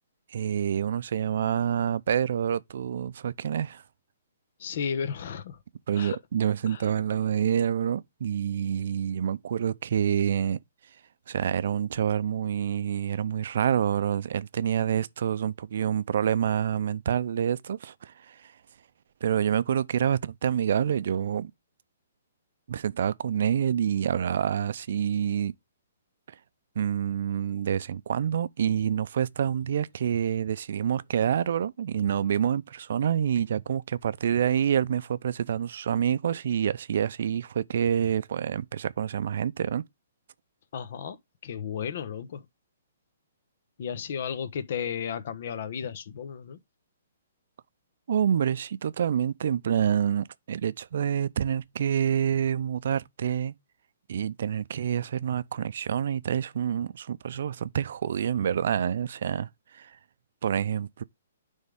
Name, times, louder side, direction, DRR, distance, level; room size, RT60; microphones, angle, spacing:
voice 1, 0.3-3.8 5.9-10.6 11.3-18.5 19.2-21.5 22.7-25.5 26.8-39.8 48.1-53.5 54.1-59.5 59.7-60.0 60.4-61.0, right 9 dB, 65° right, 0.5 m, -27 dB
voice 2, 4.6-5.6 5.9-6.2 6.7-6.9 40.7-41.2 41.4-42.4 43.8-46.6, left 7 dB, 60° left, 1.0 m, -33 dB
9.6 x 3.6 x 3.5 m
hypercardioid pair, 145°, 0 cm